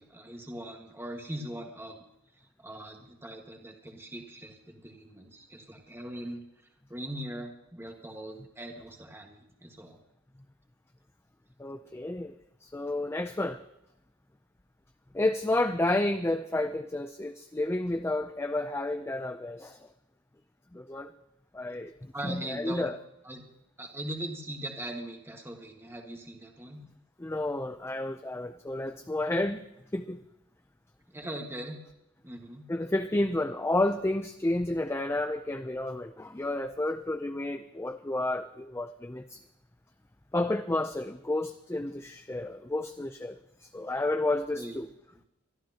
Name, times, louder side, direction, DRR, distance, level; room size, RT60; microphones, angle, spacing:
voice 1, 0.0-2.0 2.6-6.4 6.9-10.0 22.1-22.9 23.2-23.5 23.8-26.8 31.1-31.8 32.2-32.6 44.5-44.8 45.1-45.2, right 1 dB, 10° right, 2 dB, 1.6 m, -40 dB
voice 2, 11.6-12.3 12.6-13.6 15.1-19.8 20.7-21.1 21.5-21.9 22.2-23.0 27.2-29.6 29.9-30.2 32.7-39.4 40.3-44.9, left 2 dB, 10° left, 8 dB, 0.4 m, -31 dB
24.0 x 12.5 x 2.9 m, 0.85 s
head